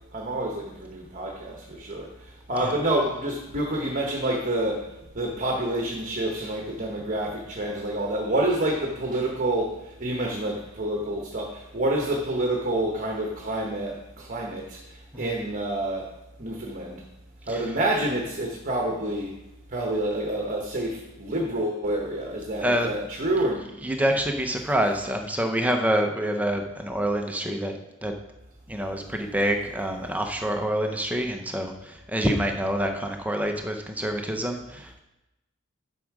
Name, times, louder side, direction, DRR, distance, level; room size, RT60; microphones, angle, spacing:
voice 1, 0.1-2.1 2.5-14.8 15.1-16.1 16.4-17.0 17.5-19.3 19.7-23.6, right 1 dB, 35° right, 0 dB, 1.2 m, -28 dB
voice 2, 22.6-22.9 23.8-27.7 28.0-28.1 28.7-35.0, equal, 5° right, 4 dB, 0.7 m, -27 dB
11.0 x 6.3 x 4.8 m, 0.96 s
head